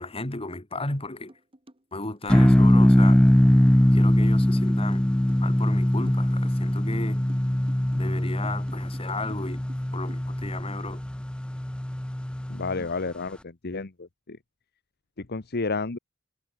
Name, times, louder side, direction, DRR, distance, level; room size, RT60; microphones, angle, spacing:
voice 1, 0.0-1.3 1.9-3.2 3.9-5.1 5.4-7.2 7.9-9.7 9.9-11.0, left 2 dB, 25° left, 2.7 m, -34 dB
sound 1, 0.9-1.0 1.3-10.5, right 1 dB, 25° right, 2.6 m, -50 dB
acoustic guitar lofi, 2.3-12.8, left 1 dB, 5° left, 0.4 m, -21 dB
voice 2, 12.5-14.4 15.2-16.0, left 3 dB, 50° left, 1.1 m, -31 dB
head